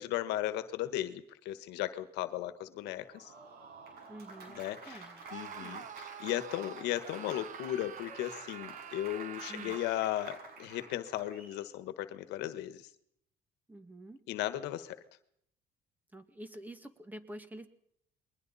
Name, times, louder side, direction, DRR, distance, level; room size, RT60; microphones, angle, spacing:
voice 1, 0.0-3.3 4.6-5.0 5.3-12.9 14.3-15.0, left 13 dB, 90° left, 12 dB, 1.4 m, -36 dB
Applause, 2.9-11.6, right 4 dB, 65° right, 6.6 m, -50 dB
voice 2, 4.1-5.2 5.6-5.8 9.5-9.8 13.7-14.2 16.1-17.7, right 1 dB, 10° right, 8 dB, 2.1 m, -48 dB
Screaming, 5.3-10.1, right 9 dB, 50° right, 0.8 m, -47 dB
29.0 x 21.5 x 4.2 m, 0.71 s
cardioid pair, 110°, 17 cm